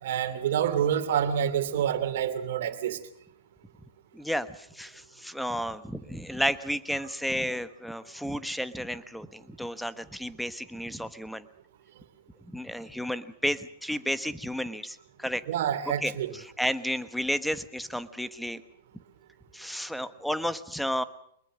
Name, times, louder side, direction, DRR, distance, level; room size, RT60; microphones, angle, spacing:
voice 1, 0.0-3.0 15.5-16.3, right 9 dB, 65° right, 6 dB, 2.9 m, -27 dB
voice 2, 4.1-11.4 12.5-15.4 16.0-18.6 19.5-21.0, equal, ahead, 13 dB, 1.2 m, -32 dB
23.5 x 21.5 x 6.4 m, 0.71 s
hypercardioid pair, 115°, 0 cm